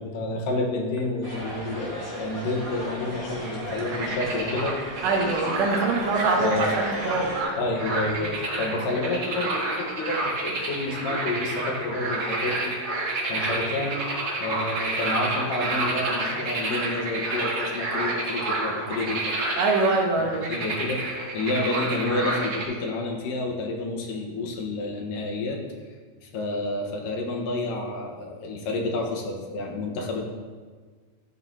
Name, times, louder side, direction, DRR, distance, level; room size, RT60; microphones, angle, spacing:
voice 1, 0.0-4.7 6.4-6.8 7.1-7.2 7.6-12.7 13.3-14.0 14.4-19.3 20.2-21.0 21.3-25.6 26.2-30.2, left 2 dB, 75° left, 1 dB, 2.8 m, -29 dB
sound 1, 1.2-7.4, equal, 15° right, 1.4 m, -35 dB
sound 2, 3.7-22.6, right 2 dB, 50° right, 2.2 m, -29 dB
voice 2, 5.0-7.3 19.6-20.6, right 3 dB, 75° right, 1 dB, 2.6 m, -24 dB
13.5 x 9.0 x 2.8 m, 1.5 s
omnidirectional pair, 4.0 m